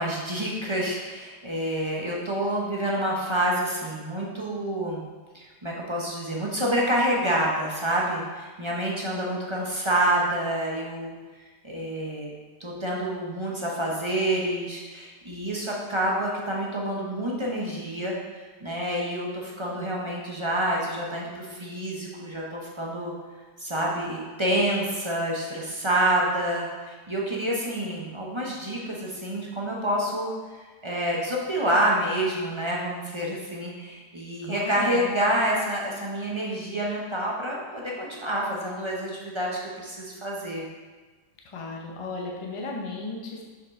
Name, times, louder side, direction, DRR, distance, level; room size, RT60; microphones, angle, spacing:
voice 1, 0.0-5.0 5.3-12.3 12.6-23.1 23.6-40.6, right 1 dB, 25° right, -3 dB, 0.6 m, -28 dB
voice 2, 34.4-35.1 41.5-43.4, left 3 dB, 30° left, -1 dB, 0.6 m, -35 dB
6.2 x 5.7 x 3.6 m, 1.4 s
omnidirectional pair, 1.8 m